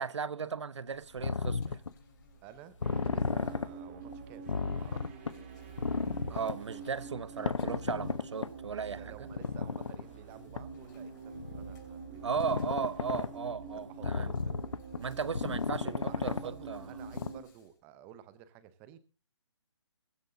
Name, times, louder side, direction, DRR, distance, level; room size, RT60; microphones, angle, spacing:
voice 1, 0.0-1.8 6.3-9.3 12.2-14.3 15.0-16.8, right 6 dB, 70° right, 1.0 m, -36 dB
Insect, 0.7-17.8, left 2 dB, 35° left, 6.8 m, -61 dB
sound 1, 1.2-1.9 2.8-3.7 4.1-4.2 4.5-5.3 5.8-6.6 7.5-8.5 9.3-10.0 10.6-10.7 11.3-11.7 12.4-13.3 14.0-15.0 15.3-16.4 16.8-16.9 17.1-17.3, left 5 dB, 85° left, 1.0 m, -33 dB
voice 2, 2.4-5.1 8.6-12.8 13.9-14.5 15.8-19.0, right 11 dB, 10° right, 0.7 m, -52 dB
sound 2, 2.8-17.4, right 5 dB, 25° right, 2.2 m, -46 dB
22.5 x 7.9 x 3.8 m
hypercardioid pair, 165°, 15 cm